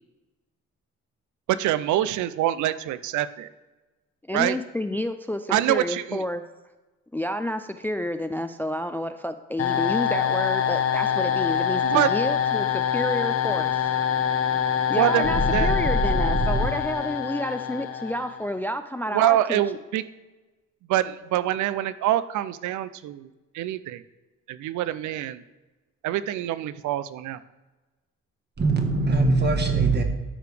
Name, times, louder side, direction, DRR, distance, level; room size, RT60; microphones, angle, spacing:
voice 1, 1.5-3.5 4.3-4.6 5.5-6.2 11.8-12.1 15.0-15.7 19.1-20.0 20.9-23.3 23.5-24.0 24.5-25.4 26.0-27.4, right 13 dB, 75° right, 0.5 m, -25 dB
voice 2, 4.3-6.4 7.1-13.8 14.9-19.6, left 1 dB, 5° left, 0.3 m, -30 dB
sound 1, 9.6-18.5, left 8 dB, 50° left, 1.0 m, -25 dB
voice 3, 15.3-16.7 28.6-30.0, right 2 dB, 35° right, 1.3 m, -22 dB
12.5 x 4.9 x 3.3 m
cardioid pair, 90°, 30 cm